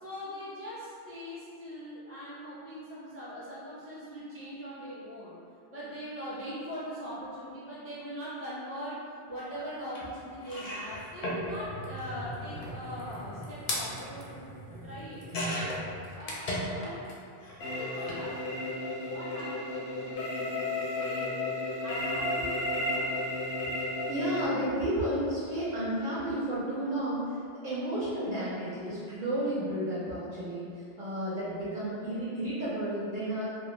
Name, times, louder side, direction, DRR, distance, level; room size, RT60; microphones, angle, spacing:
voice 1, 0.0-5.4 5.7-9.0 9.3-14.4 14.8-15.6 16.1-17.0 17.6-21.3 21.8-23.1, equal, 15° right, -10 dB, 0.5 m, -41 dB
sound 1, 9.9-10.0 10.4-17.1 17.4-18.2 19.2-19.4 19.7-19.8, equal, 55° left, 0.4 m, -37 dB
sound 2, 17.6-24.5, left 1 dB, 75° left, 0.8 m, -33 dB
voice 2, 24.1-30.7 31.0-33.5, right 1 dB, 55° right, -10 dB, 0.7 m, -32 dB
2.3 x 2.0 x 3.0 m, 2.4 s
omnidirectional pair, 1.1 m